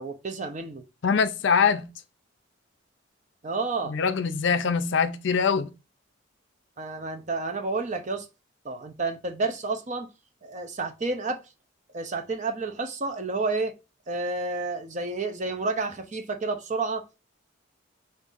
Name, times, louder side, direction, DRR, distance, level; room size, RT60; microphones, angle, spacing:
voice 1, 0.0-0.8 3.4-3.9 6.8-8.3 8.6-10.1 10.4-11.4 11.9-13.7 14.1-17.0, right 3 dB, 35° right, 0.5 m, -30 dB
voice 2, 1.0-1.9 3.9-5.7, left 6 dB, 65° left, 0.4 m, -23 dB
5.4 x 2.6 x 2.5 m
head